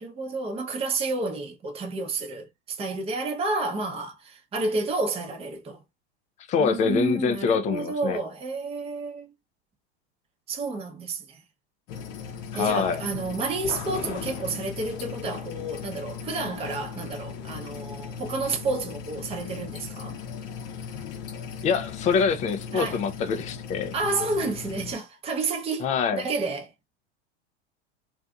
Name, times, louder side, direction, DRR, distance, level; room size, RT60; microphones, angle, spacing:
voice 1, 0.0-5.8 6.6-9.3 10.5-11.4 12.5-20.2 22.7-23.0 23.9-25.9 26.1-26.7, right 3 dB, 15° right, 0.6 m, -30 dB
voice 2, 6.5-8.2 12.5-13.0 21.6-23.9 25.8-26.3, left 6 dB, 20° left, 0.3 m, -25 dB
sound 1, 11.9-24.9, left 6 dB, 50° left, 0.7 m, -38 dB
2.6 x 2.4 x 2.2 m
hypercardioid pair, 95°, 35 cm